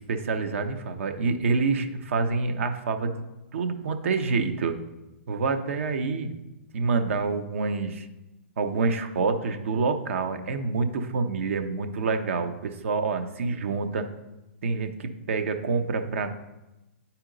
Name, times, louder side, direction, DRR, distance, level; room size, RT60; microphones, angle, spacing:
voice 1, 0.0-3.2 3.5-4.8 5.3-6.3 6.7-8.1 8.6-14.1 14.6-16.3, right 4 dB, 70° right, 7 dB, 0.8 m, -27 dB
9.0 x 4.3 x 3.9 m, 0.99 s
hypercardioid pair, 130°, 7 cm